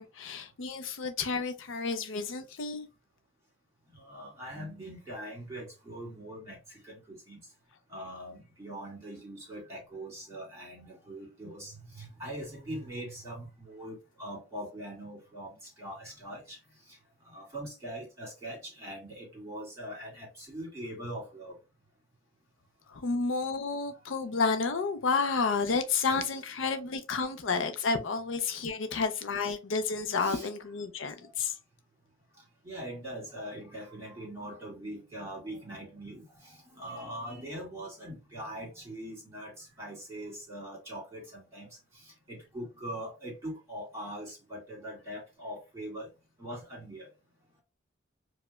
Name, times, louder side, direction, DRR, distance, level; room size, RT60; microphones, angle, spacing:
voice 1, 0.0-2.9 22.9-31.5, left 4 dB, 65° left, 0.5 m, -31 dB
voice 2, 3.9-6.6 6.8-7.4 7.9-16.6 17.3-21.6 26.2-26.3 27.2-27.3 30.2-30.5 31.2-31.3 32.6-41.7 42.0-46.1 46.4-47.1, right 1 dB, 15° right, 1.8 m, -42 dB
4.8 x 2.1 x 2.2 m
head